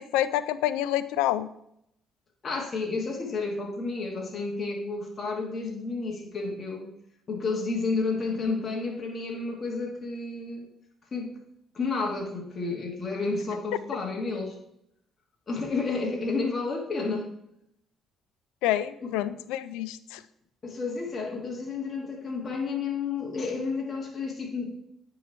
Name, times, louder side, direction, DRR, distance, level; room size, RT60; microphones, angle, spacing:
voice 1, 0.0-1.5 18.6-20.2, left 13 dB, 80° left, 15 dB, 0.3 m, -27 dB
voice 2, 2.4-6.9 7.3-10.7 11.1-11.4 11.7-14.6 15.5-17.3 19.0-19.1 20.6-24.8, left 3 dB, 45° left, 1 dB, 1.4 m, -31 dB
9.2 x 3.1 x 4.3 m, 0.75 s
hypercardioid pair, 55°, 0 cm